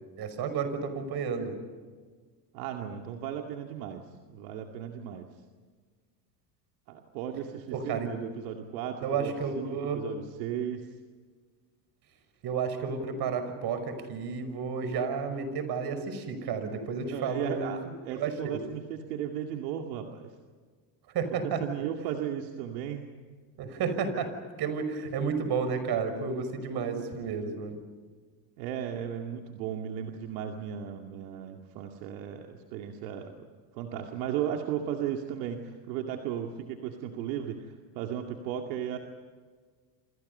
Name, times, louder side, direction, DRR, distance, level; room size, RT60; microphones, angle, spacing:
voice 1, 0.2-1.5 7.7-8.1 9.0-10.0 12.4-18.6 21.1-21.6 23.6-24.3 24.6-27.8, right 5 dB, 50° right, 9 dB, 6.0 m, -32 dB
voice 2, 2.5-5.3 6.9-10.9 17.0-20.3 21.6-23.1 28.6-33.4 33.7-39.0, right 9 dB, 75° right, 3 dB, 2.4 m, -35 dB
29.0 x 27.0 x 5.6 m, 1.5 s
supercardioid pair, 105°, 50 cm